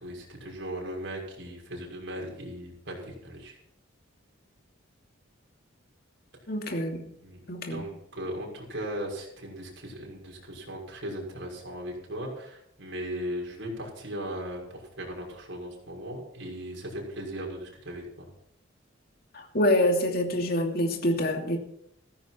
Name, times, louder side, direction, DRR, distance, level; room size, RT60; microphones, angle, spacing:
voice 1, 0.0-3.6 7.2-7.4 7.7-18.3, equal, 60° right, -1 dB, 6.3 m, -38 dB
voice 2, 6.5-7.1 7.5-7.8 19.3-21.6, left 1 dB, 50° left, 2 dB, 2.7 m, -26 dB
16.0 x 14.5 x 4.5 m, 0.75 s
head